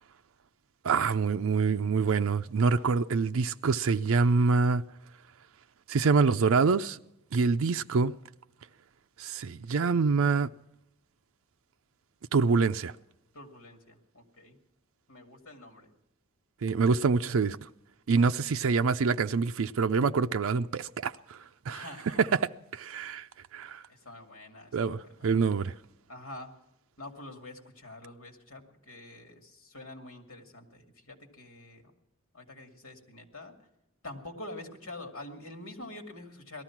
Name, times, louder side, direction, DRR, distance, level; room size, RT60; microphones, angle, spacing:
voice 1, 0.8-4.8 5.9-7.0 7.3-8.1 9.2-10.5 12.3-12.9 16.6-17.6 18.1-21.4 21.7-21.9 22.2-22.3 22.7-23.3 23.5-23.8 24.7-25.7, right 4 dB, 75° right, 0.5 m, -26 dB
voice 2, 13.3-14.6 15.1-15.9 18.1-18.4 21.7-22.4 22.9-23.1 23.9-25.1 25.5-25.8 26.1-26.5 27.0-31.9 32.3-33.5 34.0-36.6, left 2 dB, 85° left, 2.5 m, -46 dB
18.0 x 13.0 x 5.9 m
head